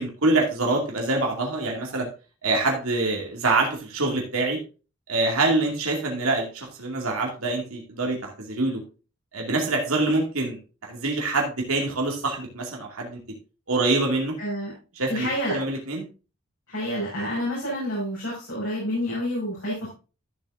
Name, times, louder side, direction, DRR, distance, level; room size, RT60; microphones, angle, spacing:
voice 1, 0.0-2.1 2.4-4.6 5.1-8.8 9.3-13.2 13.7-14.3 14.9-16.0, right 2 dB, 80° right, 0 dB, 2.4 m, -25 dB
voice 2, 14.4-14.7 15.1-15.6 16.7-19.9, equal, 65° left, -6 dB, 5.7 m, -28 dB
13.5 x 7.5 x 2.6 m, 0.33 s
head